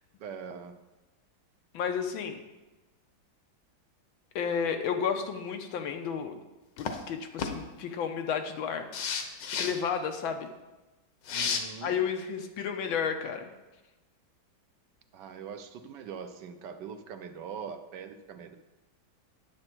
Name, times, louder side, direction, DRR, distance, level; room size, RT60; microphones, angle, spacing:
voice 1, 0.2-0.8 11.3-11.9 15.1-18.6, right 7 dB, 70° right, 8 dB, 1.3 m, -42 dB
voice 2, 1.7-2.4 4.3-6.4 6.8-8.9 9.6-10.5 11.8-13.5, left 7 dB, 90° left, 6 dB, 1.6 m, -32 dB
sound 1, 6.8-7.0 7.4-7.5 8.9-9.7 11.3-11.6, left 6 dB, 70° left, 1.5 m, -31 dB
9.6 x 7.7 x 4.5 m, 1.1 s
omnidirectional pair, 2.1 m